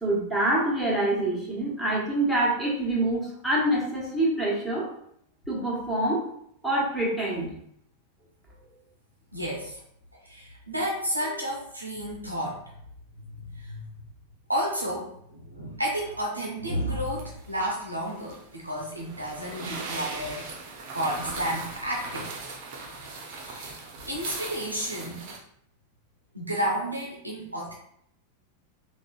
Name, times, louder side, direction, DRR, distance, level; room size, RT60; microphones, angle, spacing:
voice 1, 0.0-4.9 5.5-6.2 6.6-7.5, right 1 dB, ahead, -6 dB, 1.2 m, -26 dB
voice 2, 9.3-9.8 10.1-12.6 13.4-13.9 14.5-20.5 20.9-22.3 23.4-25.3 26.3-27.7, equal, 85° right, -1 dB, 0.5 m, -31 dB
sound 1, 17.1-25.4, right 3 dB, 45° right, 0.7 m, -39 dB
3.6 x 2.4 x 2.3 m, 0.70 s
figure-of-eight pair, 90°, 0 cm